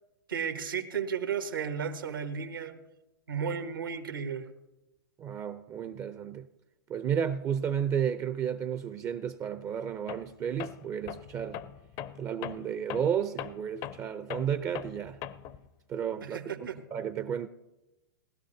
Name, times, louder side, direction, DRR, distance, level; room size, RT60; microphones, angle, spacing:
voice 1, 0.3-2.8 3.3-4.5 16.2-16.8, right 7 dB, 85° right, 1.4 m, -34 dB
voice 2, 5.2-6.5 6.9-11.6 12.2-15.2 15.9-17.5, right 8 dB, 25° right, 0.5 m, -32 dB
Tools, 10.1-10.3 10.6-15.6, left 10 dB, 40° left, 0.5 m, -40 dB
19.0 x 12.5 x 2.7 m
hypercardioid pair, 110°, 11 cm